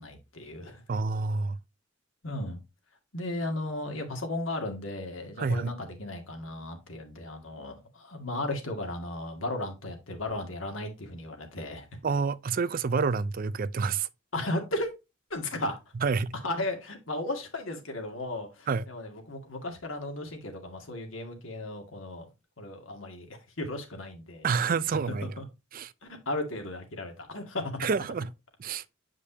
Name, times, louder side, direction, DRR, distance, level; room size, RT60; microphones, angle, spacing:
voice 1, 0.0-0.8 2.2-2.6 3.1-11.9 14.3-14.9 15.3-15.8 16.3-22.3 22.6-23.3 23.6-25.5 26.3-27.8, left 1 dB, 85° left, 2.0 m, -35 dB
voice 2, 0.9-1.6 5.4-5.7 12.0-14.1 16.0-16.3 18.7-18.8 24.4-25.3 25.7-25.9 27.8-28.3 28.6-28.8, right 5 dB, 45° right, 0.4 m, -28 dB
8.3 x 5.1 x 2.8 m
head